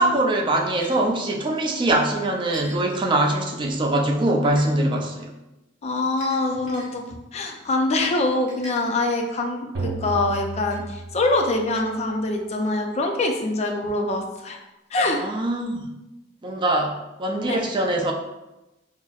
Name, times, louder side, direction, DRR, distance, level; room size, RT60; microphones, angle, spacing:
voice 1, 0.0-5.3 15.1-15.9 16.4-18.1, right 1 dB, 25° right, 1 dB, 0.4 m, -23 dB
sound 1, 0.8-0.9 2.5-2.8 4.4-4.7 6.2-6.9 8.5-9.4 10.7-10.8 11.7-11.9 12.7-12.8 13.6-13.7, right 1 dB, 45° right, 0.9 m, -42 dB
voice 2, 5.8-7.1 7.3-14.6 14.9-15.2 17.5-17.6, left 2 dB, 35° left, 2 dB, 0.4 m, -24 dB
sound 2, 9.7-11.7, right 3 dB, 80° right, 0.7 m, -33 dB
5.5 x 2.0 x 2.3 m, 0.99 s
head